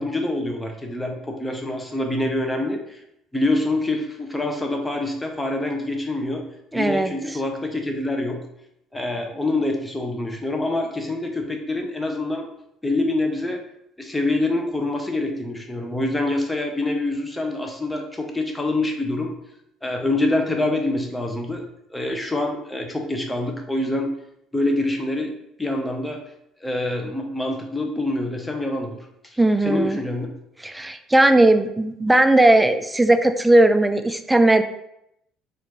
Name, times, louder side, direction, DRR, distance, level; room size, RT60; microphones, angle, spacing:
voice 1, 0.0-3.0 3.3-6.4 6.7-8.4 8.9-12.5 12.8-13.6 14.0-19.3 19.8-21.6 21.9-24.1 24.5-25.3 25.6-26.2 26.6-29.4 29.6-30.3, left 2 dB, 15° left, 3 dB, 0.8 m, -25 dB
voice 2, 6.7-7.1 29.4-30.0 30.6-34.6, right 1 dB, 10° right, 9 dB, 0.3 m, -17 dB
4.2 x 2.6 x 3.0 m, 0.79 s
hypercardioid pair, 60°, 0 cm